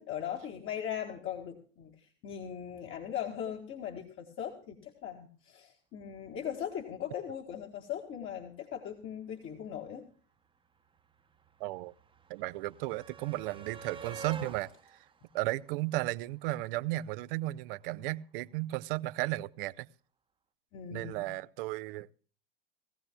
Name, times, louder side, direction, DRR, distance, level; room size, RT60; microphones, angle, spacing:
voice 1, 0.0-10.0 20.7-21.3, left 9 dB, 45° left, 1.9 m, -39 dB
sound 1, 10.1-10.2 10.3-16.5 17.7-17.8 18.1-18.2, right 5 dB, 15° right, 1.0 m, -49 dB
voice 2, 11.6-11.9 12.3-15.1 15.3-19.9 20.9-22.1, right 18 dB, 65° right, 0.6 m, -35 dB
20.0 x 15.0 x 2.2 m
hypercardioid pair, 85°, 30 cm